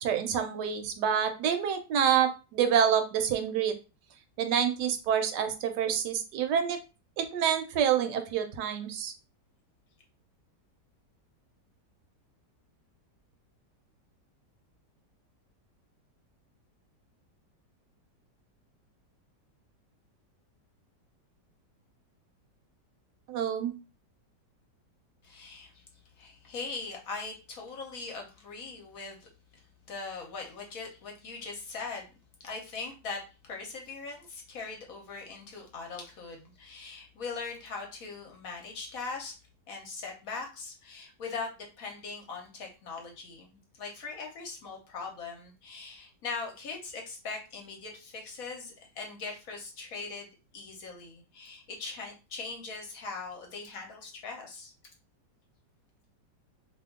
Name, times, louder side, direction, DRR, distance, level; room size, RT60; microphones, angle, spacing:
voice 1, 0.0-3.7 4.4-6.8 7.2-9.1 23.3-23.7, right 8 dB, 80° right, 7 dB, 1.2 m, -27 dB
voice 2, 25.2-25.8 26.2-32.1 32.4-39.3 39.7-54.7, left 4 dB, 60° left, 1 dB, 1.0 m, -41 dB
2.8 x 2.3 x 3.5 m, 0.31 s
omnidirectional pair, 1.9 m